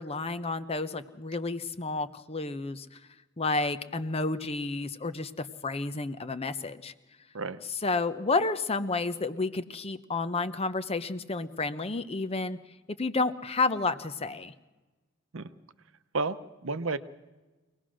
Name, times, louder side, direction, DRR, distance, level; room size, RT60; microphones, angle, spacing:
voice 1, 0.0-2.9 3.4-6.9 7.7-12.6 13.0-14.5, left 3 dB, 30° left, 12 dB, 0.8 m, -31 dB
voice 2, 16.1-17.0, right 3 dB, 70° right, 12 dB, 0.8 m, -31 dB
24.0 x 18.5 x 6.3 m, 1.2 s
head